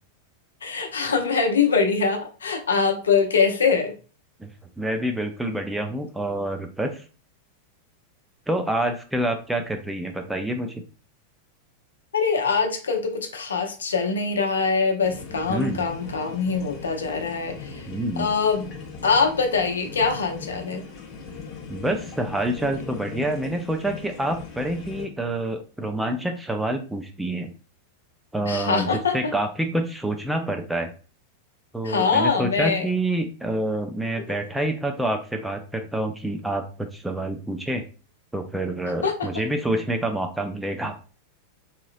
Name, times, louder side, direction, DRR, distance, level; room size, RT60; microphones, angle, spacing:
voice 1, 0.6-3.9 12.1-17.8 18.2-18.7 19.0-20.8 28.5-29.2 31.8-32.9 39.0-39.3, left 5 dB, 70° left, 4 dB, 0.7 m, -23 dB
voice 2, 4.8-7.0 8.5-10.8 15.5-15.8 17.9-18.3 21.7-27.5 28.3-30.9 31.7-37.8 38.3-40.9, right 1 dB, 5° right, 5 dB, 0.5 m, -27 dB
sound 1, 15.0-25.1, left 5 dB, 35° left, 0.7 m, -39 dB
3.8 x 3.0 x 2.4 m, 0.36 s
figure-of-eight pair, 90°, 0 cm